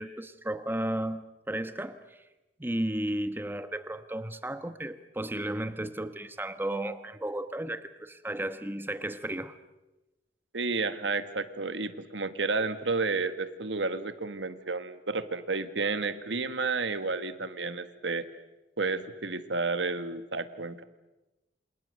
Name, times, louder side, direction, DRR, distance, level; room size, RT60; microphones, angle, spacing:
voice 1, 0.0-2.2 2.6-9.6, right 1 dB, 10° right, 10 dB, 1.1 m, -34 dB
voice 2, 10.5-18.3 18.8-20.8, right 3 dB, 90° right, 11 dB, 1.6 m, -31 dB
28.0 x 27.0 x 6.6 m, 1.0 s
head